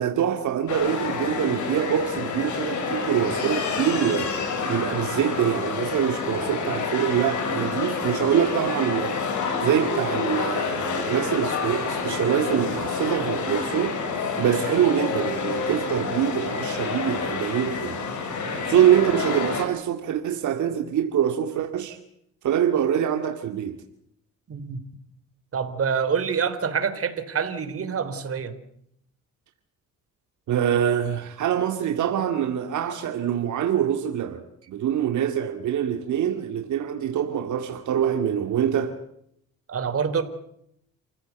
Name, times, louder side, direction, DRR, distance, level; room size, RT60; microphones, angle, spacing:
voice 1, 0.0-4.4 4.7-9.2 9.6-14.0 14.4-18.0 18.6-22.0 22.4-23.8 30.5-34.4 34.7-39.0, right 9 dB, 75° right, 2.2 m, -24 dB
sound 1, 0.7-19.6, left 5 dB, 75° left, 7.4 m, -28 dB
voice 2, 24.5-24.8 25.5-28.6 39.7-40.2, right 6 dB, 50° right, 3.4 m, -26 dB
29.0 x 16.0 x 8.1 m
cardioid pair, 90°, 30 cm